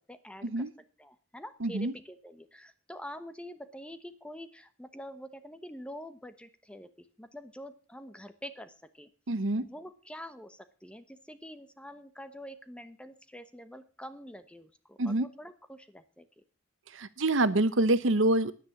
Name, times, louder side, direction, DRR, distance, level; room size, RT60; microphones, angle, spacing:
voice 1, 0.1-0.6 1.0-9.1 9.6-16.4, equal, 5° left, 11 dB, 0.9 m, -46 dB
voice 2, 1.6-1.9 9.3-9.6 15.0-15.3 16.9-18.5, right 2 dB, 75° right, 15 dB, 0.9 m, -26 dB
10.5 x 9.6 x 7.1 m, 0.39 s
head